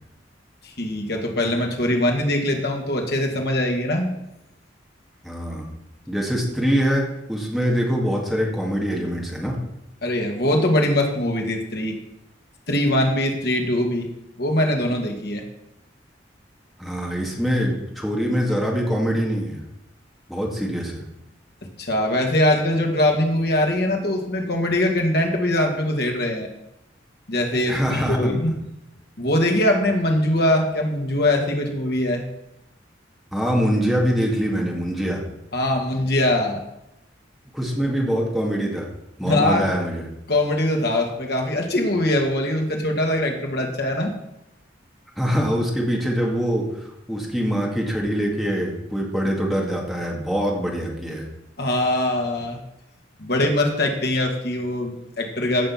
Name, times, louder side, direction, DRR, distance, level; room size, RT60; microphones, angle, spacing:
voice 1, 0.6-4.1 10.0-12.0 12.7-14.1 14.4-15.4 21.8-26.5 27.3-28.6 29.2-32.3 35.5-36.6 39.2-39.7 40.3-44.1 51.6-52.6 53.2-55.7, left 1 dB, 60° left, 2 dB, 2.0 m, -22 dB
voice 2, 5.2-5.7 6.1-9.6 16.8-19.6 20.3-21.0 27.7-28.4 33.3-35.2 37.5-38.9 39.2-40.0 45.2-51.3, equal, ahead, -2 dB, 2.1 m, -24 dB
15.5 x 5.6 x 5.8 m, 0.86 s
head